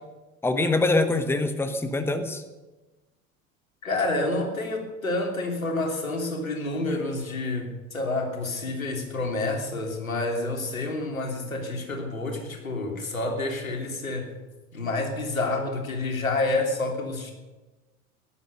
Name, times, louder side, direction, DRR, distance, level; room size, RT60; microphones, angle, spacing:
voice 1, 0.4-2.4, left 2 dB, 5° left, 9 dB, 1.2 m, -24 dB
voice 2, 3.8-14.3 14.7-17.3, left 2 dB, 80° left, 3 dB, 3.1 m, -28 dB
18.0 x 11.5 x 6.6 m, 1.2 s
figure-of-eight pair, 75°, 41 cm